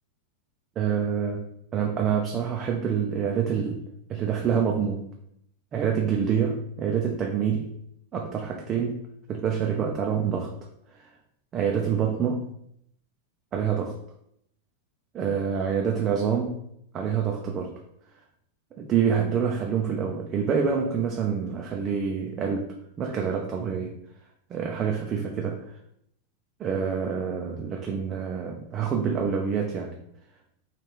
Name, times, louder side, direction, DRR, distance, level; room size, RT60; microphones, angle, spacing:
voice 1, 0.8-1.4 1.7-3.8 4.1-5.1 5.7-7.7 8.1-10.5 10.9-11.1 11.5-12.5 13.5-14.0 15.1-16.6 16.9-17.7 18.8-23.9 24.5-25.6 26.6-29.9, right 7 dB, 30° right, 1 dB, 0.4 m, -27 dB
3.0 x 2.4 x 3.5 m, 0.73 s
figure-of-eight pair, 90°, 0 cm